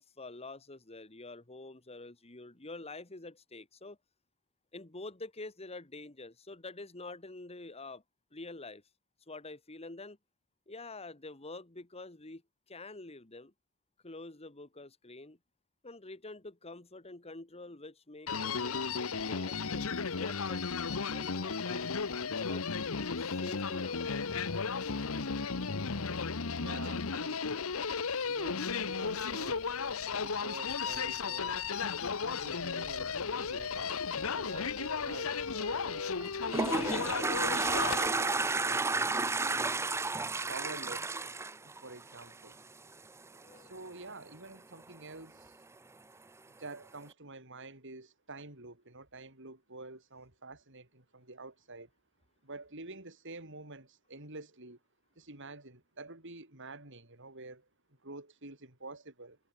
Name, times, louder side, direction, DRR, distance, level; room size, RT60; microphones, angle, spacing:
voice 1, 0.0-4.0 4.7-8.0 8.3-8.8 9.3-10.2 10.7-12.4 12.7-13.5 14.0-15.4 15.8-20.6 20.9-21.9 22.4-22.8 23.2-24.1 34.5-34.9 43.3-43.7, left 2 dB, 30° left, 1.9 m, -47 dB
Human voice, 18.3-38.1, left 5 dB, 75° left, 1.1 m, -34 dB
voice 2, 26.6-27.7 28.2-29.7 30.2-31.6 32.2-34.0 34.3-36.1 36.8-37.4 37.7-39.1 39.4-39.7 40.5-41.1 41.6-42.6 43.6-45.6 46.6-51.9 52.4-54.8 55.2-57.7 58.0-59.4, right 2 dB, 60° right, 5.9 m, -48 dB
Toilet flush, 36.2-42.5, right 3 dB, 15° right, 0.5 m, -31 dB
head